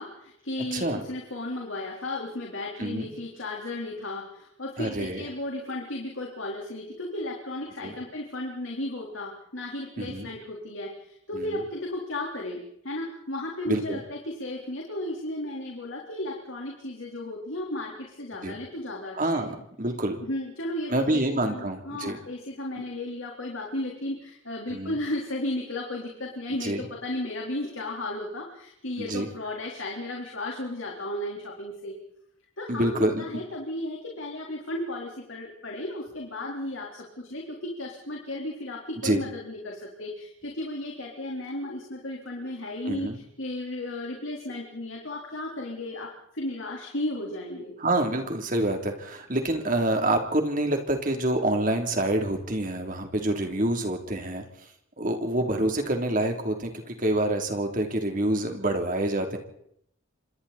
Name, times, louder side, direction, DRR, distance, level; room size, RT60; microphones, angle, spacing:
voice 1, 0.0-19.4 20.2-32.0 32.6-47.7, left 1 dB, 85° left, -1 dB, 4.0 m, -34 dB
voice 2, 0.7-1.1 2.8-3.1 4.8-5.2 7.8-7.9 10.0-10.3 11.3-11.4 13.7-14.0 18.4-18.6 19.1-20.2 20.9-22.2 24.7-25.0 26.6-26.8 29.0-29.3 32.7-33.2 39.0-39.2 42.9-43.2 47.8-54.4 55.0-59.4, right 1 dB, 45° right, 4 dB, 3.3 m, -27 dB
29.0 x 26.0 x 4.3 m, 0.73 s
head